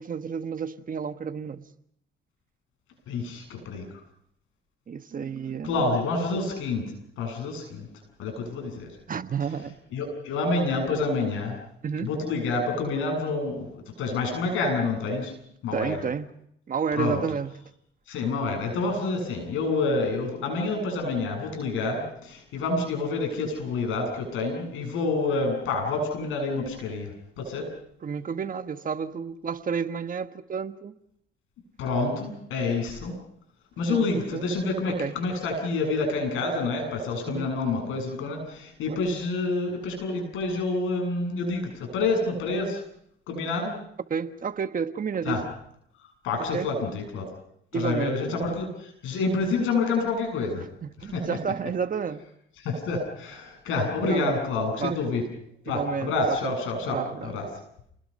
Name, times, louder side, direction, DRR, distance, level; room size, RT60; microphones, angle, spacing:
voice 1, 0.0-1.7 4.9-5.8 9.1-9.8 11.8-12.1 15.7-16.3 16.7-17.6 28.0-30.9 33.9-34.4 34.9-35.1 37.3-37.5 38.9-39.0 44.1-45.5 46.5-46.7 47.7-48.2 50.6-52.3 54.1-54.3 54.8-55.0 55.7-56.5 56.8-57.3, right 6 dB, 45° right, 9 dB, 1.4 m, -31 dB
voice 2, 3.1-3.8 5.6-6.8 7.2-7.9 8.2-8.9 9.9-11.6 12.0-13.7 14.0-15.3 15.6-16.0 16.9-17.2 18.1-27.7 31.8-33.1 33.8-42.8 43.3-43.7 45.2-45.4 46.2-47.3 47.7-50.6 51.1-51.4 52.6-55.2 55.6-57.5, left 3 dB, 90° left, 3 dB, 7.9 m, -28 dB
30.0 x 20.0 x 5.5 m, 0.71 s
cardioid pair, 90°, 20 cm